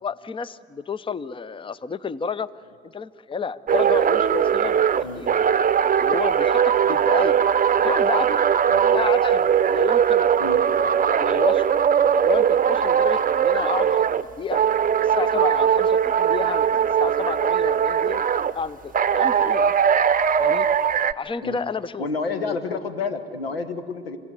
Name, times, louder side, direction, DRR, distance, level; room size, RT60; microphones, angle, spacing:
voice 1, 0.0-2.5 2.9-4.9 5.2-5.3 6.0-7.4 7.8-8.4 8.9-10.3 11.0-11.7 12.1-14.6 15.0-18.2 18.5-19.7 20.4-20.7 21.2-22.6, left 5 dB, 20° left, 19 dB, 0.7 m, -31 dB
sound 1, 3.7-14.2 14.5-18.5 18.9-21.1, right 8 dB, 30° right, 0.8 m, -20 dB
voice 2, 22.0-24.2, left 4 dB, 90° left, 12 dB, 1.2 m, -30 dB
28.0 x 15.5 x 9.4 m, 2.3 s
hypercardioid pair, 55°, 29 cm